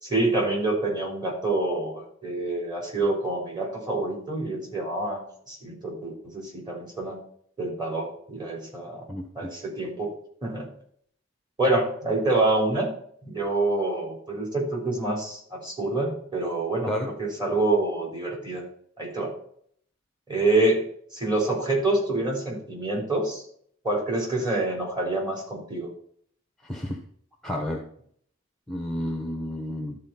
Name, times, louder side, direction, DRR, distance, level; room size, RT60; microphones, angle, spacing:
voice 1, 0.0-7.2 7.6-9.0 9.3-10.1 10.4-10.7 11.6-12.9 13.2-18.6 19.0-19.3 20.3-20.9 21.1-23.4 23.8-25.9, right 2 dB, 20° right, -1 dB, 3.5 m, -27 dB
voice 2, 9.1-9.5 16.9-17.1 26.6-27.0 27.4-27.8 28.7-30.0, left 1 dB, ahead, 2 dB, 1.0 m, -31 dB
12.5 x 4.3 x 5.8 m, 0.63 s
head